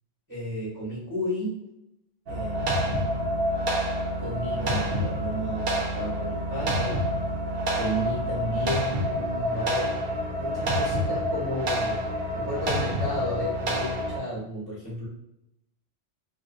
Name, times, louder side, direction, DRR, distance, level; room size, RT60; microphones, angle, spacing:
voice 1, 0.3-1.6 2.3-2.6 4.2-7.1 7.7-15.1, equal, 20° right, -10 dB, 0.6 m, -33 dB
sound 1, 2.3-14.2, equal, 65° right, 0.7 m, -28 dB
2.3 x 2.2 x 2.5 m, 0.82 s
omnidirectional pair, 1.2 m